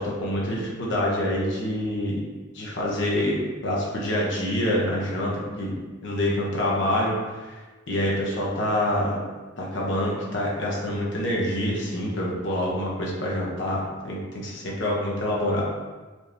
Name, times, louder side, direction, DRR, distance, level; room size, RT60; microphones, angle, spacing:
voice 1, 0.0-2.2 2.5-5.3 5.6-5.7 6.0-7.6 7.9-9.2 9.6-15.7, left 1 dB, 65° left, -4 dB, 1.0 m, -26 dB
4.6 x 2.8 x 3.4 m, 1.3 s
head